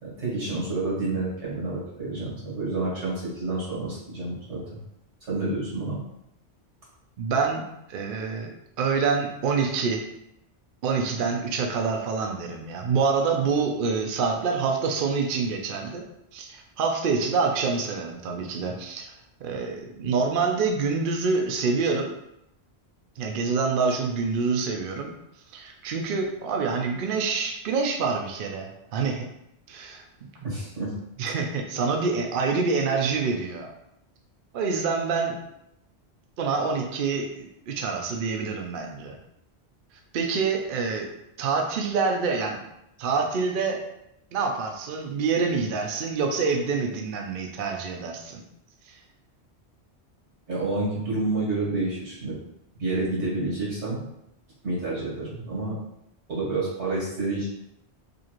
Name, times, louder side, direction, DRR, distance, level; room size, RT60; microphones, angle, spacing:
voice 1, 0.0-4.6 5.3-6.0 30.4-30.9 50.5-52.4 52.8-54.1 54.6-55.8 56.3-57.5, right 2 dB, 85° right, -6 dB, 1.9 m, -29 dB
voice 2, 7.2-7.6 7.9-8.5 8.8-10.0 10.8-16.0 16.3-19.1 19.4-22.1 23.2-25.1 25.5-29.2 29.7-30.0 31.2-33.7 34.5-35.4 36.4-39.2 40.1-41.1 41.4-42.6 43.0-43.8 44.3-48.4 48.9-49.0, right 4 dB, 60° right, 2 dB, 0.6 m, -26 dB
5.0 x 2.4 x 3.0 m, 0.81 s
omnidirectional pair, 1.1 m